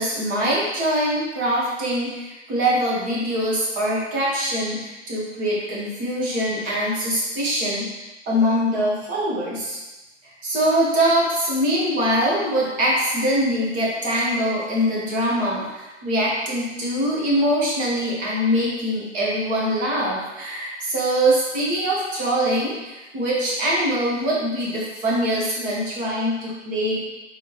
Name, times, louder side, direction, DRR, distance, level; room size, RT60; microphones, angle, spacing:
voice 1, 0.0-7.9 8.3-9.8 10.4-27.0, equal, 20° right, -5 dB, 1.3 m, -23 dB
4.4 x 3.7 x 2.9 m, 1.0 s
figure-of-eight pair, 115°, 35 cm